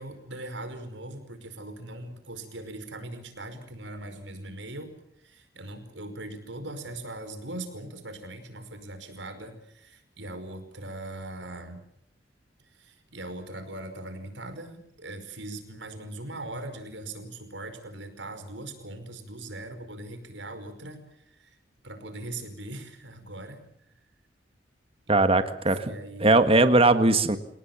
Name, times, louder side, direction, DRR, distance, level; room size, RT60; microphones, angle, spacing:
voice 1, 0.0-4.9 5.2-11.8 12.7-21.6 21.8-23.6 25.1-25.2 25.7-26.4, right 2 dB, 85° right, 9 dB, 5.2 m, -40 dB
voice 2, 25.1-25.8 26.2-27.4, right 2 dB, 30° right, 10 dB, 1.7 m, -19 dB
29.0 x 18.5 x 7.4 m, 0.72 s
head